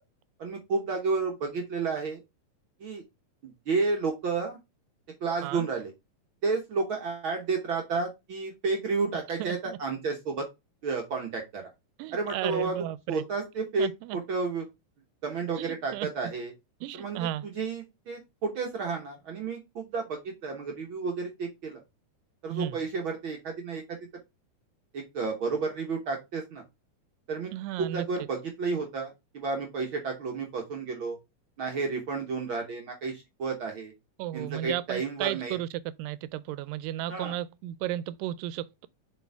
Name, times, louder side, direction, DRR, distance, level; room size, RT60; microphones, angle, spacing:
voice 1, 0.4-2.2 2.8-3.0 3.4-4.6 5.2-5.9 6.4-10.5 10.8-11.7 12.1-12.8 13.1-14.6 15.2-16.5 17.0-17.2 17.5-21.8 22.4-24.0 24.9-26.6 27.3-27.5 27.8-31.2 31.6-33.9 34.3-35.6 37.1-37.3, right 4 dB, 65° right, 1.3 m, -31 dB
voice 2, 9.4-9.8 12.0-13.2 13.8-14.2 15.6-16.1 16.8-17.4 22.5-22.8 27.5-28.1 34.2-35.7 36.0-38.9, right 13 dB, 90° right, 2.2 m, -34 dB
6.9 x 4.4 x 3.4 m
omnidirectional pair, 3.8 m